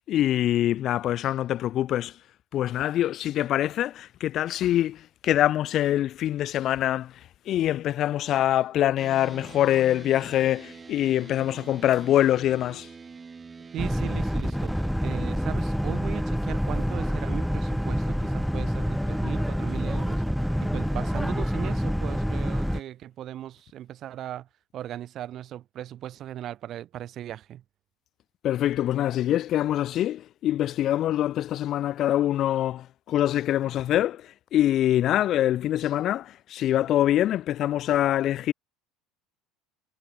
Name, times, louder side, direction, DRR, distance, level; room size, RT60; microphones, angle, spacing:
voice 1, 0.1-2.1 2.5-7.1 7.5-12.9 28.4-34.2 34.5-38.5, left 12 dB, 50° left, 0.4 m, -24 dB
sound 1, 9.0-14.9, right 5 dB, 25° right, 2.5 m, -45 dB
voice 2, 13.7-14.7 15.0-20.2 20.6-24.5 24.7-27.6, right 12 dB, 50° right, 1.3 m, -38 dB
Boat Water vehicle, 13.8-22.8, equal, ahead, 0.7 m, -27 dB
supercardioid pair, 90°, 0 cm